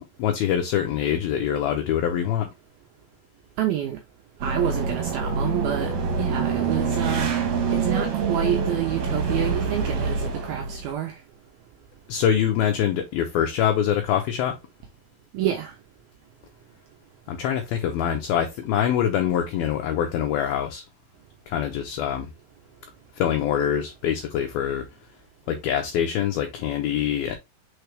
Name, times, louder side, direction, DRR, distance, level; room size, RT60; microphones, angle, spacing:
voice 1, 0.0-2.5 12.1-14.6 17.3-20.8 21.5-22.3 23.2-24.9 25.5-27.4, left 9 dB, 75° left, 2.3 m, -24 dB
voice 2, 3.6-4.0 4.4-7.3 7.7-11.2 15.3-15.7, right 11 dB, 80° right, 2.2 m, -28 dB
sound 1, 4.4-10.9, right 5 dB, 50° right, 2.4 m, -26 dB
6.5 x 4.5 x 3.3 m
omnidirectional pair, 5.3 m